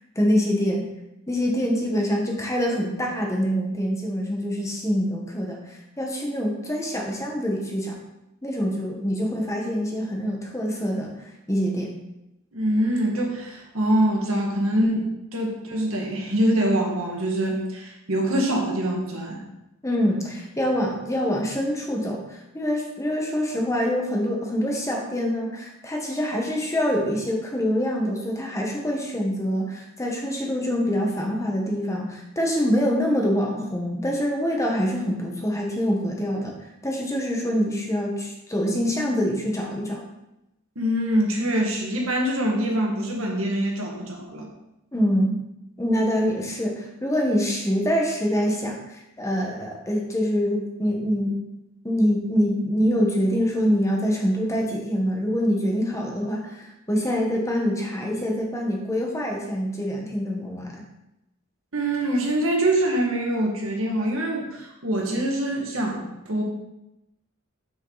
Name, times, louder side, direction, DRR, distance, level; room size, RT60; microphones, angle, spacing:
voice 1, 0.1-0.9 1.3-8.0 8.4-11.9 19.8-36.6 36.8-40.0 44.9-45.4 45.8-51.4 51.8-60.8, equal, 15° left, 0 dB, 1.2 m, -25 dB
voice 2, 12.5-19.4 40.8-44.5 61.7-66.4, right 1 dB, 90° right, 0 dB, 1.9 m, -24 dB
7.5 x 6.4 x 4.0 m, 0.91 s
head